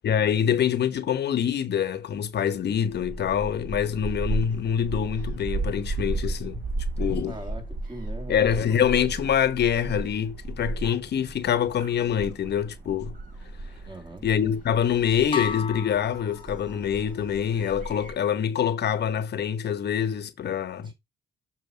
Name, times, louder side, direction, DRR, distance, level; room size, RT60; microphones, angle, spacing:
voice 1, 0.0-6.6 7.0-7.4 8.3-13.1 14.2-20.9, left 8 dB, 55° left, 1.0 m, -25 dB
Gull seagull, 2.7-18.1, right 2 dB, 45° right, 5.1 m, -35 dB
voice 2, 7.3-8.7 13.9-14.2 20.8-20.9, right 1 dB, 25° right, 2.1 m, -41 dB
sound 1, 15.3-17.1, left 5 dB, 25° left, 1.1 m, -34 dB
6.9 x 4.4 x 4.4 m
cardioid pair, 90°, 20 cm